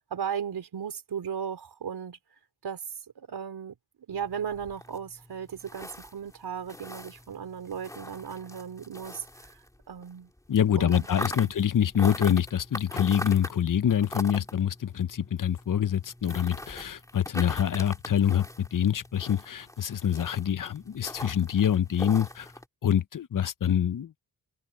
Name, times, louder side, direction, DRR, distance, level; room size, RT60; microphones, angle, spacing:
voice 1, 0.0-2.2 2.6-2.8 3.2-3.7 4.1-9.5 9.9-10.3 10.8-11.5, right 7 dB, 75° right, 4.6 m, -36 dB
sound 1, 4.1-10.1 10.4-22.6, left 1 dB, 10° left, 2.6 m, -42 dB
voice 2, 10.5-22.5 22.8-24.1, left 9 dB, 55° left, 0.9 m, -26 dB
cardioid pair, 75°, 39 cm